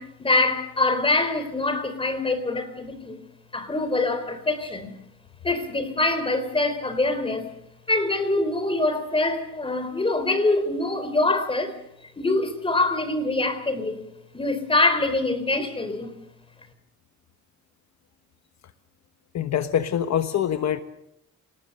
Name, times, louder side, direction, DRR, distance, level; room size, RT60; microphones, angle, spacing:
voice 1, 0.0-3.2 3.5-4.9 5.4-7.5 7.9-11.8 12.2-14.1 14.3-16.1, left 2 dB, 15° left, 9 dB, 3.9 m, -24 dB
voice 2, 19.3-20.8, left 9 dB, 60° left, 9 dB, 1.3 m, -24 dB
28.0 x 18.5 x 6.7 m, 0.80 s
cardioid pair, 125°, 30 cm